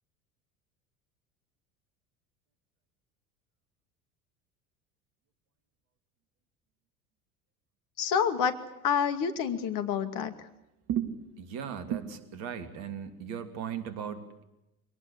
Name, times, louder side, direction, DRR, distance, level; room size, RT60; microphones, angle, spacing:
voice 1, 8.0-8.5 8.8-10.3, left 7 dB, 50° left, 9 dB, 2.4 m, -28 dB
voice 2, 10.9-14.4, right 9 dB, 55° right, 9 dB, 3.1 m, -36 dB
25.0 x 19.0 x 8.6 m, 0.89 s
figure-of-eight pair, 70°, 43 cm